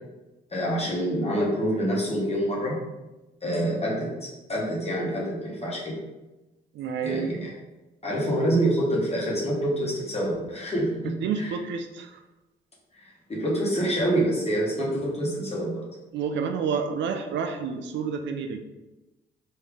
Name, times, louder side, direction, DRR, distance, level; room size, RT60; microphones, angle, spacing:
voice 1, 0.5-2.8 3.4-6.0 7.0-7.5 8.0-11.6 13.3-15.9, right 1 dB, 35° left, -4 dB, 1.2 m, -26 dB
voice 2, 6.7-7.3 11.2-12.2 16.1-18.6, right 6 dB, 70° right, 6 dB, 0.4 m, -29 dB
3.3 x 2.7 x 3.5 m, 1.0 s
supercardioid pair, 60°, 19 cm